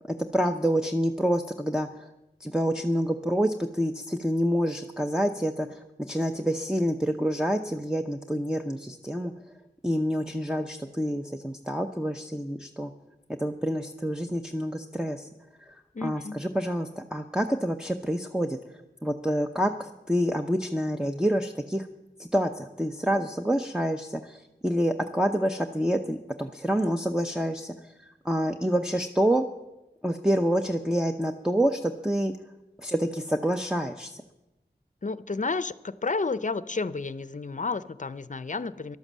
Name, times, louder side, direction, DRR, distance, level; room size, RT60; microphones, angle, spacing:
voice 1, 0.1-2.1 2.4-9.3 9.8-12.9 13.4-15.3 15.7-15.8 16.0-18.6 19.0-21.9 22.2-29.4 30.0-32.3 32.8-34.2, equal, 5° right, 3 dB, 0.7 m, -27 dB
voice 2, 15.9-16.4 35.0-39.0, left 3 dB, 45° left, 16 dB, 0.6 m, -31 dB
12.0 x 11.5 x 7.4 m, 0.97 s
wide cardioid pair, 55°, 17 cm